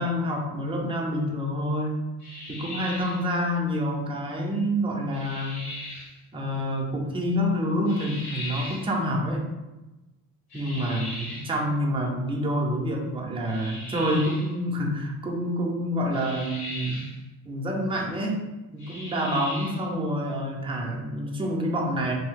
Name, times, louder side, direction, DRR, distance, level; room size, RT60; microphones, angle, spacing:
voice 1, 0.0-2.0 2.5-5.7 6.3-9.4 10.5-17.0 17.4-18.4 18.7-22.1, equal, 15° right, -1 dB, 0.5 m, -27 dB
sound 1, 2.2-3.3 5.1-6.1 7.9-8.9 10.5-11.6 13.5-14.5 16.1-17.2 18.8-19.9, left 1 dB, 70° left, 1.3 m, -38 dB
2.7 x 2.6 x 3.6 m, 1.1 s
cardioid pair, 130°, 38 cm